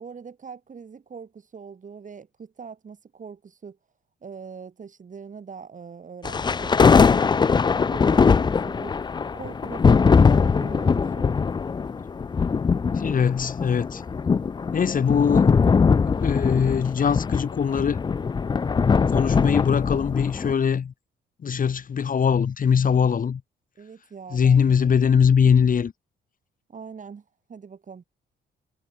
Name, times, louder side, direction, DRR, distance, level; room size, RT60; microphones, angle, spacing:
voice 1, 0.0-3.8 4.2-9.0 9.3-11.5 23.8-25.0 26.7-28.0, right 6 dB, 40° right, 3.9 m, -42 dB
sound 1, 6.2-20.5, left 5 dB, 20° left, 0.4 m, -21 dB
voice 2, 12.9-14.0 14.7-15.5 16.1-18.0 19.1-20.9 21.4-23.4 24.3-25.9, left 7 dB, 45° left, 1.8 m, -21 dB
cardioid pair, 90°, 20 cm